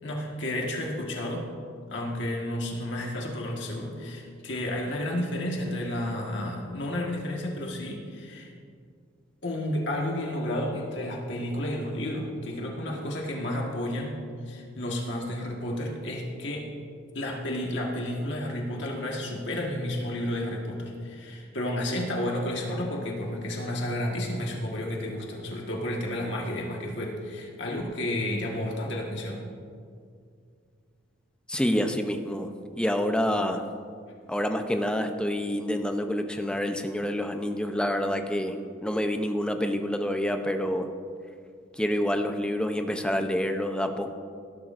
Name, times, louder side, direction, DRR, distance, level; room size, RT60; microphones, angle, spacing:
voice 1, 0.0-1.4 1.9-8.5 9.4-16.7 17.1-29.4, left 1 dB, 65° left, -1 dB, 1.6 m, -31 dB
voice 2, 31.5-33.6 34.3-40.9 41.7-44.1, equal, 5° left, 5 dB, 0.6 m, -28 dB
18.0 x 11.5 x 2.6 m, 2.2 s
head